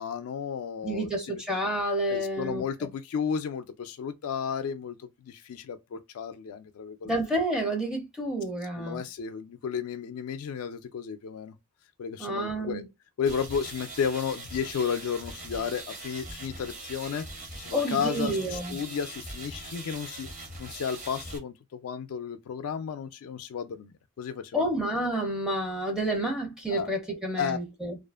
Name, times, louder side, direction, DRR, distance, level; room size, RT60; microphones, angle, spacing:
voice 1, 0.0-1.4 2.1-7.2 8.8-11.5 12.0-12.8 13.2-17.2 17.6-20.3 20.6-24.7 26.7-26.9 27.4-27.6, left 7 dB, 90° left, 0.3 m, -33 dB
voice 2, 0.8-2.9 7.0-9.0 12.2-12.9 17.7-18.8 24.5-28.0, right 1 dB, 5° right, 0.5 m, -29 dB
sound 1, 13.3-21.4, right 2 dB, 35° right, 0.8 m, -42 dB
2.4 x 2.4 x 2.3 m
head